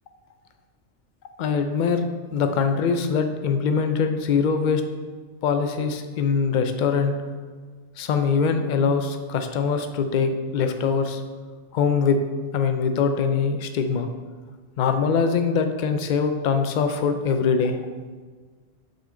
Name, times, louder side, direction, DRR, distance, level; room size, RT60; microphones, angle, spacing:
voice 1, 1.4-2.0 2.3-4.8 5.4-7.2 8.0-11.2 11.7-12.2 12.5-14.1 14.8-17.8, left 5 dB, 55° left, 7 dB, 0.5 m, -23 dB
5.9 x 4.3 x 3.8 m, 1.5 s
omnidirectional pair, 1.2 m